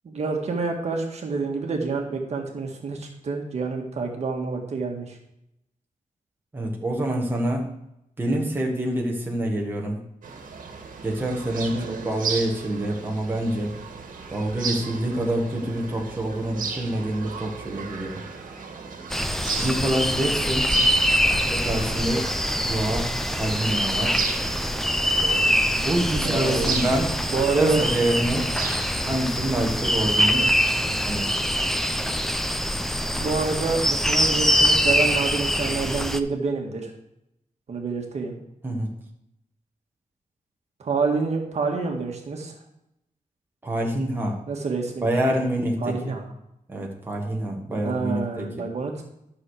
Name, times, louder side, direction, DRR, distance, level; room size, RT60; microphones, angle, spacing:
voice 1, 0.0-5.2 11.7-12.0 26.2-26.7 27.3-27.8 33.2-36.9 37.7-38.4 40.8-42.5 44.5-45.1 45.8-46.3 47.7-48.9, right 4 dB, 50° right, 1 dB, 1.7 m, -27 dB
voice 2, 6.5-7.6 8.2-10.0 11.0-13.7 14.3-18.2 19.6-20.7 21.5-24.2 25.8-27.1 27.5-28.5 29.0-30.5 30.8-31.4 38.6-38.9 43.6-44.4 45.0-45.8 46.7-48.7, right 1 dB, 15° right, -1 dB, 1.6 m, -26 dB
sound 1, 10.2-29.1, right 5 dB, 75° right, 1.7 m, -35 dB
sound 2, 19.1-36.2, equal, ahead, 0.5 m, -24 dB
12.0 x 6.5 x 4.9 m, 0.82 s
wide cardioid pair, 160°, 14 cm